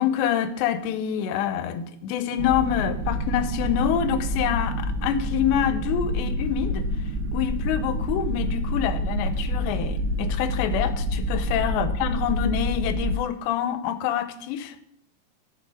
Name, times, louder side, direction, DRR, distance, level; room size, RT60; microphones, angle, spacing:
voice 1, 0.0-6.9 7.3-14.8, left 9 dB, 85° left, 2.9 m, -26 dB
sound 1, 2.4-13.1, equal, 90° right, 3.2 m, -27 dB
14.0 x 7.2 x 4.9 m
omnidirectional pair, 5.0 m